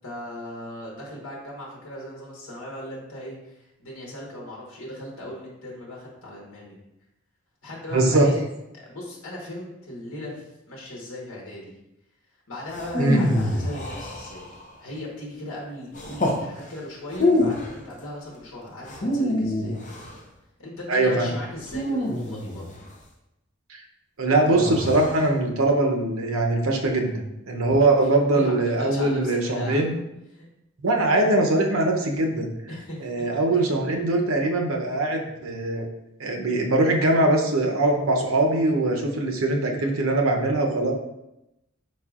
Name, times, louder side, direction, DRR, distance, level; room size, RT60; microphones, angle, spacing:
voice 1, 0.0-6.7 7.6-8.4 8.7-11.7 12.5-19.8 20.6-22.8 27.7-27.8 28.3-29.9 30.3-30.4 32.7-33.3 33.6-33.8, left 1 dB, 80° left, -3 dB, 1.3 m, -38 dB
voice 2, 7.9-8.3 13.0-13.2 20.9-21.3 23.7-23.8 24.2-29.9 30.8-32.5 33.0-35.9 36.2-40.9, right 2 dB, 90° right, 2 dB, 0.7 m, -22 dB
sound 1, 12.7-14.7 15.9-16.4 17.1-17.8 18.8-20.2 21.7-22.9 24.5-25.2, left 1 dB, 35° left, 0.7 m, -26 dB
4.7 x 4.2 x 2.4 m, 0.89 s
head